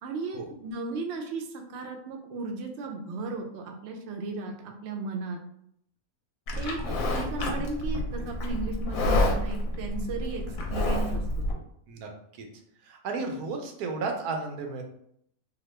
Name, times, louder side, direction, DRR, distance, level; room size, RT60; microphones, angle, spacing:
voice 1, 0.0-5.4 6.6-11.2 11.5-11.6, right 3 dB, 65° right, 2 dB, 0.7 m, -35 dB
Livestock farm animals working animals, 6.5-11.5, left 1 dB, 75° left, 1.0 m, -28 dB
voice 2, 11.9-12.5 12.8-14.8, right 3 dB, 90° right, 3 dB, 1.1 m, -34 dB
2.9 x 2.2 x 3.1 m, 0.70 s
omnidirectional pair, 1.5 m